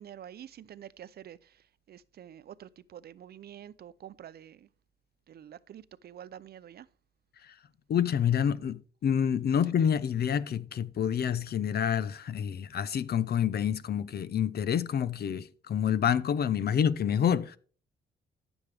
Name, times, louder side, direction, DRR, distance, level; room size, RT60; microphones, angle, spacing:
voice 1, 0.0-4.7 5.3-6.9, right 10 dB, 55° right, 0.6 m, -48 dB
voice 2, 7.9-17.6, left 8 dB, 55° left, 0.7 m, -28 dB
13.0 x 7.1 x 3.4 m
cardioid pair, 90°, 20 cm